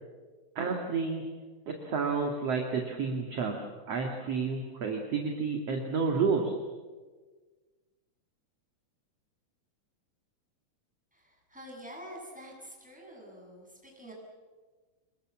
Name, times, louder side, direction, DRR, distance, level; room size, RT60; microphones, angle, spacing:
voice 1, 0.6-1.2 1.7-3.6 3.9-6.5, right 5 dB, 45° right, 2 dB, 2.4 m, -30 dB
voice 2, 11.1-14.1, equal, ahead, -2 dB, 7.0 m, -47 dB
27.5 x 21.5 x 7.5 m, 1.4 s
omnidirectional pair, 4.9 m